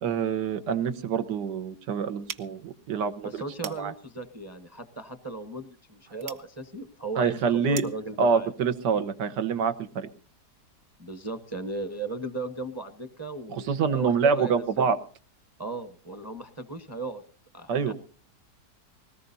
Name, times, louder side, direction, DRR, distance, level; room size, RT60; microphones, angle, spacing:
voice 1, 0.0-3.3 3.6-3.9 7.2-7.8 8.2-10.1 13.7-15.0 17.7-17.9, right 6 dB, 85° right, 11 dB, 1.7 m, -26 dB
sound 1, 2.2-8.1, right 8 dB, 65° right, 1.5 m, -45 dB
voice 2, 3.2-8.5 11.0-14.9 15.6-17.2 17.5-17.9, right 3 dB, 20° right, 9 dB, 0.7 m, -37 dB
21.0 x 18.5 x 2.7 m, 0.41 s
omnidirectional pair, 1.8 m